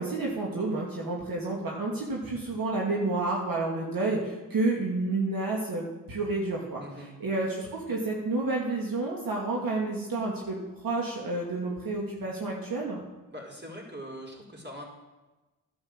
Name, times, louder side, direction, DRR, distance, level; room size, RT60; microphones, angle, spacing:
voice 1, 0.0-6.8 7.2-10.6 10.8-13.0, right 2 dB, 60° right, -2 dB, 2.5 m, -30 dB
voice 2, 13.3-14.8, equal, 25° right, -1 dB, 4.5 m, -42 dB
11.5 x 7.8 x 7.4 m, 1.1 s
supercardioid pair, 55°, 40 cm